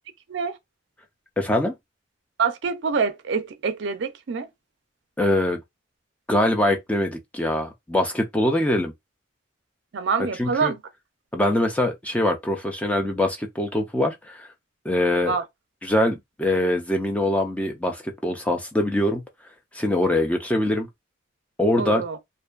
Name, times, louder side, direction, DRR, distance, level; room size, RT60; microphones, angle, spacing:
voice 1, 1.4-1.7 5.2-5.6 6.3-8.9 10.4-10.7 11.3-14.5 14.9-15.4 15.8-19.2 19.7-20.9 21.6-22.0, left 1 dB, 5° left, 0.4 m, -23 dB
voice 2, 2.4-4.5 9.9-10.8 15.2-15.4 21.8-22.2, right 5 dB, 60° right, 0.4 m, -25 dB
2.5 x 2.2 x 2.3 m
head